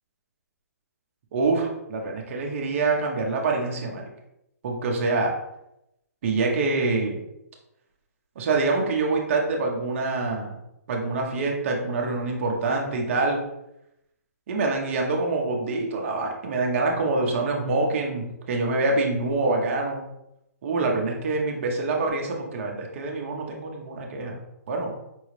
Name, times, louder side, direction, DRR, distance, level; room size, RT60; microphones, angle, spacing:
voice 1, 1.3-4.1 4.6-5.3 6.2-7.2 8.3-10.6 10.9-13.4 14.5-20.0 20.6-24.4 24.7-24.9, right 3 dB, 50° right, 1 dB, 1.0 m, -25 dB
5.3 x 2.4 x 3.3 m, 0.85 s
hypercardioid pair, 145°, 9 cm